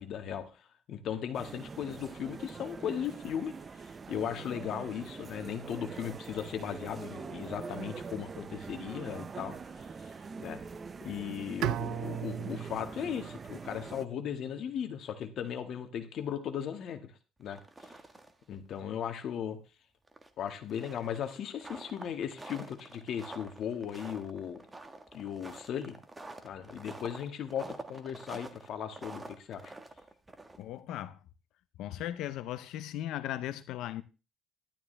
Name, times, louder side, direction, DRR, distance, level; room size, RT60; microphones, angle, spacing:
voice 1, 0.0-10.1 10.4-10.6 11.0-17.1 17.4-17.9 18.5-19.6 20.4-24.6 25.1-26.0 26.4-29.7, left 8 dB, 60° left, 1.8 m, -37 dB
sound 1, 1.3-14.1, right 5 dB, 30° right, 0.6 m, -44 dB
Bowed string instrument, 11.6-14.6, right 13 dB, 75° right, 0.6 m, -38 dB
sound 2, 17.4-18.4 18.7-18.8 19.2-19.3 20.1-30.8, right 2 dB, 15° right, 1.6 m, -47 dB
voice 2, 30.6-31.2 31.8-34.0, left 12 dB, 75° left, 0.7 m, -37 dB
12.0 x 12.0 x 3.4 m
cardioid pair, 115°, 0 cm